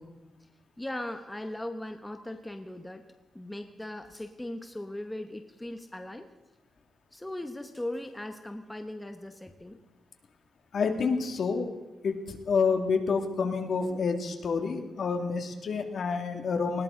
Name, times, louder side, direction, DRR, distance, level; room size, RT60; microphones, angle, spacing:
voice 1, 0.8-3.0 3.3-6.3 7.1-9.8, left 1 dB, 10° left, 6 dB, 0.9 m, -38 dB
voice 2, 10.7-11.7 12.0-16.8, left 5 dB, 55° left, 5 dB, 2.1 m, -28 dB
19.5 x 18.5 x 3.8 m, 1.1 s
wide cardioid pair, 145°, 0 cm